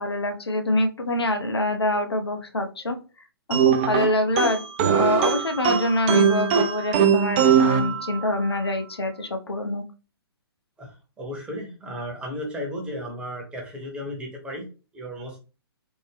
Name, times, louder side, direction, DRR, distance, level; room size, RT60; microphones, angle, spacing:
voice 1, 0.0-3.0 3.5-4.6 4.9-9.8, left 1 dB, 75° left, 5 dB, 0.6 m, -25 dB
sound 1, 3.5-8.6, right 7 dB, 25° right, 0.3 m, -21 dB
voice 2, 11.2-14.7 14.9-15.4, equal, 10° right, -1 dB, 0.8 m, -34 dB
3.5 x 2.0 x 3.3 m, 0.34 s
figure-of-eight pair, 125°, 13 cm